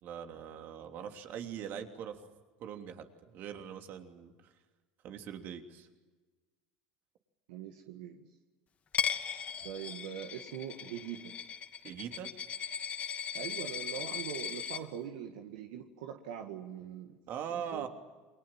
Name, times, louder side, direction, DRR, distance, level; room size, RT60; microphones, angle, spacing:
voice 1, 0.0-2.2 2.6-4.5 5.0-5.9 11.8-12.3 17.3-17.9, right 8 dB, 60° right, 5 dB, 3.1 m, -42 dB
voice 2, 7.5-8.3 9.6-11.4 13.3-17.2 17.5-17.9, right 9 dB, 80° right, 4 dB, 1.9 m, -42 dB
Coin (dropping), 8.9-14.8, left 7 dB, 40° left, 2.4 m, -38 dB
28.5 x 23.0 x 7.5 m, 1.3 s
supercardioid pair, 90°, 4 cm